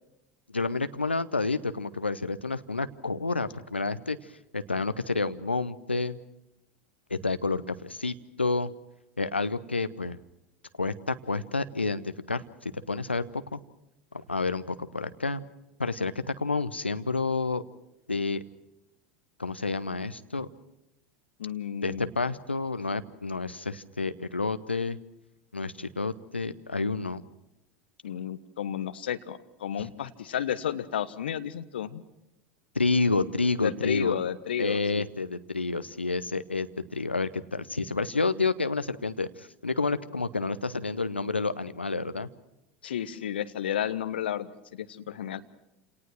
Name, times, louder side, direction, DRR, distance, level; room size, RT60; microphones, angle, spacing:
voice 1, 0.5-4.2 4.5-6.2 7.1-8.7 9.2-10.2 10.8-13.6 14.3-15.4 15.8-17.6 18.1-18.4 19.4-20.5 21.8-25.0 25.5-27.2 32.7-34.2 34.6-42.3, left 3 dB, 85° left, 12 dB, 0.9 m, -29 dB
voice 2, 21.4-22.1 28.0-32.0 33.6-35.0 42.8-45.4, left 9 dB, 70° left, 12 dB, 1.2 m, -32 dB
28.5 x 18.5 x 6.1 m, 0.89 s
figure-of-eight pair, 80°, 6 cm